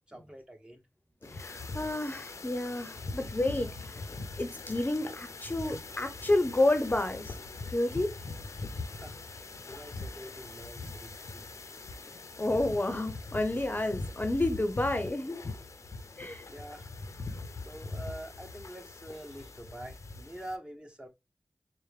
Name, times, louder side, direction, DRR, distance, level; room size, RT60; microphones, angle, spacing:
voice 1, 0.1-0.8 8.8-9.2 9.6-11.9 16.0-16.2 16.4-16.9 17.6-21.1, right 1 dB, 15° right, 0.9 m, -46 dB
sound 1, 1.2-20.6, left 3 dB, 75° left, 0.6 m, -42 dB
voice 2, 1.2-4.1 4.4-7.3 7.7-8.1 12.1-15.4 16.2-16.4, left 2 dB, 35° left, 0.7 m, -30 dB
4.4 x 2.1 x 3.3 m
cardioid pair, 45°, 5 cm